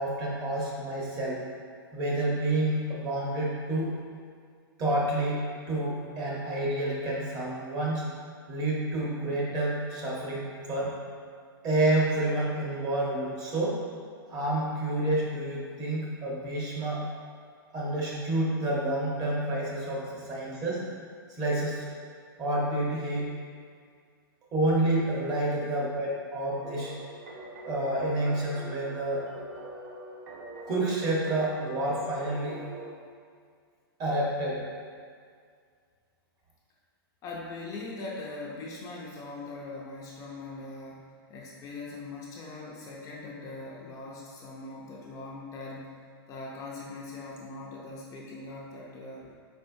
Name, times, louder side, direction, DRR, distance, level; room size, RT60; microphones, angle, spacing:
voice 1, 0.0-1.4 1.9-3.9 4.8-5.4 5.7-8.0 8.5-10.9 11.6-13.8 14.3-17.0 17.7-20.8 21.3-21.9 22.4-23.3 24.5-26.9 27.7-29.3 30.7-32.6 34.0-34.6, right 1 dB, 30° right, -5 dB, 1.1 m, -29 dB
sound 1, 26.6-32.9, right 1 dB, 55° right, 0.8 m, -44 dB
voice 2, 37.2-46.0 46.3-49.3, left 3 dB, 25° left, -4 dB, 0.5 m, -41 dB
4.4 x 4.4 x 2.7 m, 2.1 s
hypercardioid pair, 140°, 13 cm